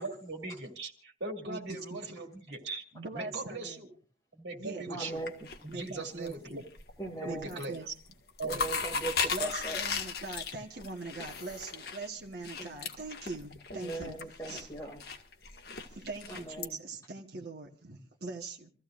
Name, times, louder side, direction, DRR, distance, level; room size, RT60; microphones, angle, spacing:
voice 1, 0.0-2.8 3.1-3.9 4.3-5.2 5.6-6.6 7.2-7.8 8.4-8.6, right 2 dB, 70° right, 3 dB, 2.5 m, -40 dB
voice 2, 1.4-1.8 2.9-3.8 4.6-5.0 5.7-6.6 7.2-7.9 9.3-14.2 14.5-14.7 15.9-18.7, right 3 dB, 55° right, 0 dB, 1.4 m, -41 dB
voice 3, 4.9-5.3 7.0-7.6 8.4-9.8 12.6-12.7 13.7-15.0 16.3-16.8, right 2 dB, 20° left, -1 dB, 2.4 m, -39 dB
sound 1, 5.2-6.3 6.7-7.1 7.4-7.8 8.1-16.7, left 5 dB, 55° left, 1.7 m, -37 dB
27.5 x 14.5 x 2.5 m, 0.40 s
head